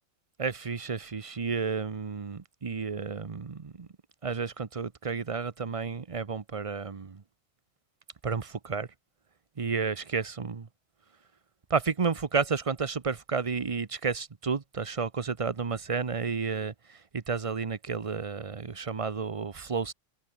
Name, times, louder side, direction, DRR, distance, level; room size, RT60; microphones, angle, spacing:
voice 1, 0.4-3.9 4.2-7.2 8.2-8.9 9.6-10.7 11.7-19.9, right 5 dB, 30° right, 0.7 m, -31 dB
omnidirectional pair, 1.4 m